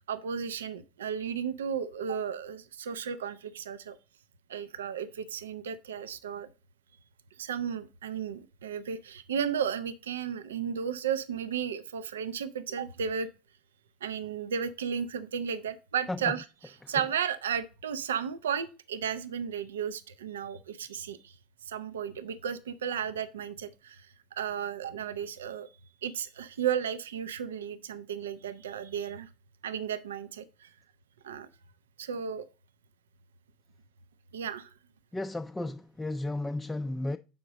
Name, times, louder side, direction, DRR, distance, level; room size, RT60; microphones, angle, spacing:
voice 1, 0.1-4.0 4.5-6.5 7.4-13.3 14.0-16.5 16.9-21.3 21.7-24.1 24.4-25.7 26.0-29.3 29.6-30.7 31.2-31.5 32.0-32.5 34.3-34.7, right 7 dB, 80° right, 0.4 m, -34 dB
voice 2, 16.1-16.4 16.8-16.9 35.1-37.2, left 2 dB, 10° left, 0.3 m, -34 dB
6.8 x 5.0 x 3.9 m
hypercardioid pair, 75°, 0 cm